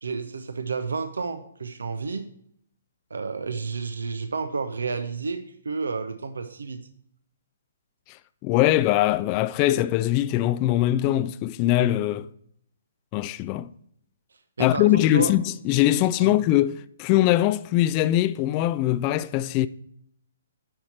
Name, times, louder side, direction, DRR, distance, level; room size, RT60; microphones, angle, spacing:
voice 1, 0.0-2.3 3.1-6.8 14.6-15.3 16.2-16.3, right 4 dB, 75° right, 0.7 m, -31 dB
voice 2, 8.4-12.3 13.1-13.7 14.6-19.7, left 14 dB, 30° left, 0.4 m, -22 dB
10.0 x 5.8 x 4.3 m
figure-of-eight pair, 130°, 0 cm